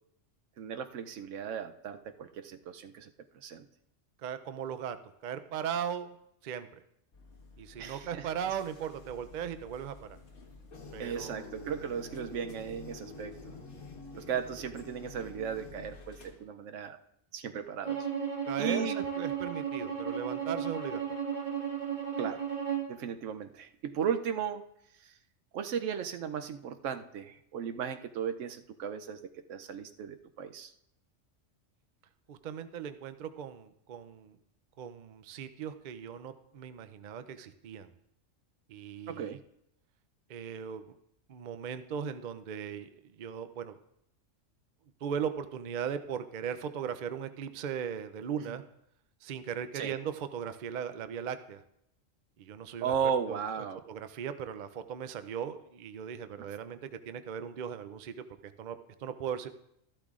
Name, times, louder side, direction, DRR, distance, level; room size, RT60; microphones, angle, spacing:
voice 1, 0.6-3.7 7.8-8.3 11.0-13.5 14.2-17.0 17.3-18.1 18.6-19.0 22.2-22.5 22.9-24.6 25.0-25.1 25.5-30.7 39.1-39.4 49.7-49.9 52.8-53.8 56.4-56.5, right 7 dB, 75° right, 9 dB, 1.0 m, -36 dB
voice 2, 4.2-5.0 5.2-6.2 6.4-6.7 7.6-10.2 10.9-11.5 14.1-14.3 18.5-21.2 32.3-34.4 34.8-37.9 38.7-39.4 40.3-40.9 41.3-43.8 45.0-48.6 49.2-51.6 52.4-52.9 53.3-53.4 53.9-59.5, right 8 dB, 55° right, 11 dB, 0.5 m, -38 dB
sound 1, 7.1-16.4, left 3 dB, 60° left, 1.7 m, -54 dB
sound 2, 10.7-16.3, left 2 dB, 80° left, 1.7 m, -48 dB
Bowed string instrument, 17.8-22.9, right 7 dB, 35° right, 1.5 m, -34 dB
13.5 x 12.0 x 2.4 m, 0.77 s
omnidirectional pair, 1.3 m